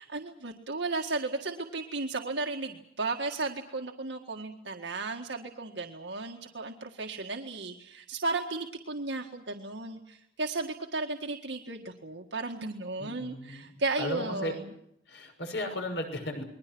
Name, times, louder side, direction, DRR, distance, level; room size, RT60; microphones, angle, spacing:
voice 1, 0.0-14.6, right 3 dB, 90° right, 2 dB, 1.8 m, -34 dB
voice 2, 13.0-13.7 14.0-14.6 15.1-16.4, left 1 dB, 85° left, 5 dB, 6.3 m, -35 dB
29.5 x 22.0 x 6.2 m, 0.75 s
head